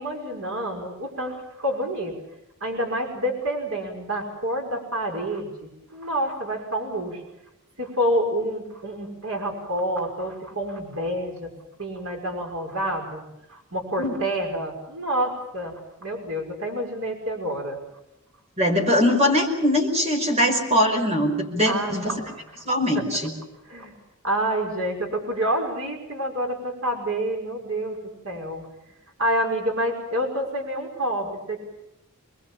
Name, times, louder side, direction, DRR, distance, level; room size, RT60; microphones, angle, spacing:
voice 1, 0.0-2.2 2.6-7.2 7.8-11.5 11.8-13.2 13.5-17.8 21.7-22.3 23.7-23.9 24.2-28.0 28.2-28.7 29.2-31.6, right 1 dB, 70° right, 1 dB, 5.7 m, -28 dB
voice 2, 18.6-22.2 22.7-23.3, left 1 dB, 30° right, 3 dB, 5.3 m, -21 dB
26.5 x 21.5 x 7.4 m, 0.88 s
head